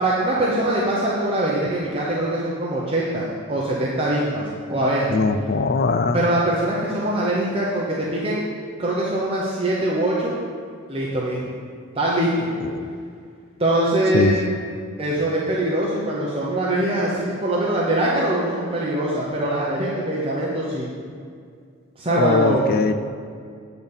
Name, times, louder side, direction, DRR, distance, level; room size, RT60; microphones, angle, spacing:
voice 1, 0.0-5.1 6.1-8.4 8.8-10.3 10.9-11.5 11.9-12.5 13.6-14.5 15.0-20.9 22.0-22.6, right 1 dB, 25° right, -6 dB, 0.9 m, -23 dB
voice 2, 5.1-6.2 12.6-12.9 14.1-14.3 22.1-22.9, left 4 dB, 45° left, 8 dB, 0.4 m, -21 dB
8.6 x 4.1 x 7.0 m, 2.2 s
head